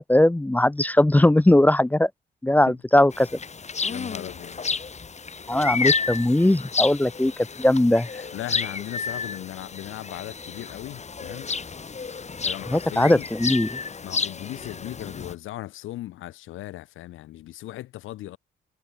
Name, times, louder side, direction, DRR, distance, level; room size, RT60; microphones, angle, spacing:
voice 1, 0.0-2.1 2.4-3.3 5.5-7.3 7.6-8.1 12.7-13.8, left 1 dB, 10° left, 0.6 m, -19 dB
sound 1, 3.1-15.3, left 5 dB, 35° left, 6.9 m, -31 dB
voice 2, 3.9-4.6 5.7-5.8 8.3-11.6 12.4-13.3 14.0-18.4, left 15 dB, 90° left, 5.7 m, -37 dB
cardioid pair, 90°, 20 cm